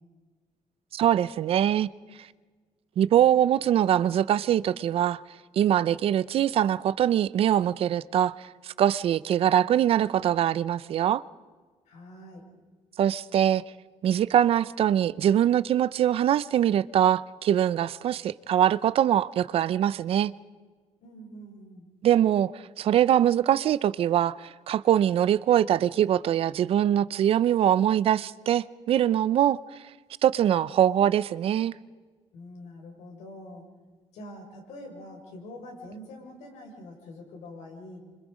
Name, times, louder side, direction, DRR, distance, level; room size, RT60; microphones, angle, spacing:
voice 1, 0.9-1.9 3.0-5.2 5.6-8.4 8.6-11.2 13.0-13.6 14.0-20.3 22.0-22.5 22.8-29.6 30.2-31.7, right 10 dB, 55° right, 0.6 m, -23 dB
voice 2, 11.9-12.4 21.0-21.9 32.3-33.6 34.1-38.0, left 1 dB, 80° left, 6.3 m, -44 dB
27.5 x 25.5 x 5.1 m
cardioid pair, 150°, 12 cm